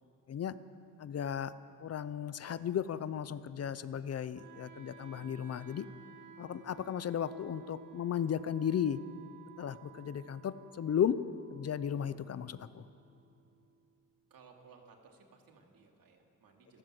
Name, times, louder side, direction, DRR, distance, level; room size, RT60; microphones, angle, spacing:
voice 1, 1.0-1.5 1.8-5.9 6.4-9.0 9.6-11.2 11.5-12.8, left 9 dB, 45° left, 15 dB, 0.6 m, -35 dB
Wind instrument woodwind instrument, 4.3-14.3, right 6 dB, 60° right, 2.1 m, -56 dB
voice 2, 14.3-16.8, right 5 dB, 90° right, 2 dB, 2.7 m, -59 dB
28.5 x 13.0 x 7.7 m, 2.7 s
wide cardioid pair, 180°, 34 cm